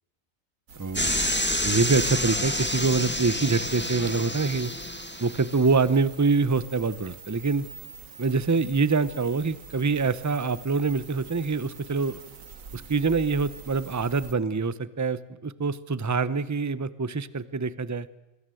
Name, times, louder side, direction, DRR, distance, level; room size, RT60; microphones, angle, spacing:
sound 1, 0.7-14.3, right 6 dB, 80° right, 1.8 m, -46 dB
voice 1, 0.8-1.1 1.6-4.7 5.2-7.7 8.2-12.2 12.7-18.1, right 4 dB, 15° right, 17 dB, 0.6 m, -25 dB
sound 2, 0.9-5.5, left 1 dB, 10° left, 1.7 m, -28 dB
26.0 x 22.0 x 7.7 m, 1.0 s
omnidirectional pair, 1.4 m